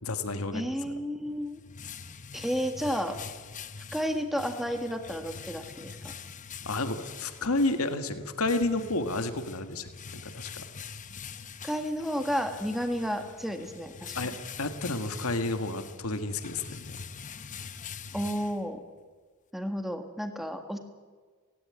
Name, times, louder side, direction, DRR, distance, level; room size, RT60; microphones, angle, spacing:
voice 1, 0.0-0.9 6.6-9.9 10.2-10.6 14.1-14.3 14.6-17.0, left 2 dB, 90° left, 8 dB, 1.7 m, -31 dB
voice 2, 0.5-1.6 2.3-3.2 3.9-6.0 11.6-14.1 18.1-18.8 19.5-20.8, equal, ahead, 5 dB, 1.7 m, -32 dB
sound 1, 1.2-19.0, left 6 dB, 35° left, 0.8 m, -44 dB
17.5 x 17.5 x 9.6 m, 1.5 s
head